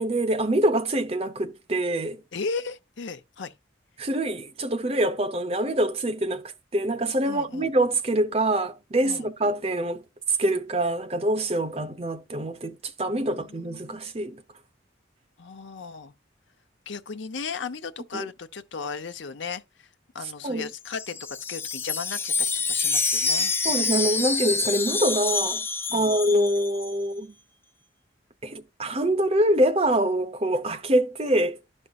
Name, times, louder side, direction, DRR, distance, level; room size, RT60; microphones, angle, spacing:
voice 1, 0.0-2.2 4.0-10.0 10.4-14.4 18.1-18.3 20.4-20.7 23.6-25.6 25.9-27.3 28.4-31.6, right 1 dB, 30° right, 0.7 m, -25 dB
voice 2, 2.3-3.5 7.2-7.7 9.0-9.3 13.1-14.0 15.4-16.1 16.9-19.9 20.1-23.5 25.9-26.2, left 5 dB, 75° left, 0.8 m, -36 dB
Wind chime, 20.7-26.9, left 4 dB, 10° left, 0.4 m, -27 dB
12.0 x 5.4 x 2.4 m
head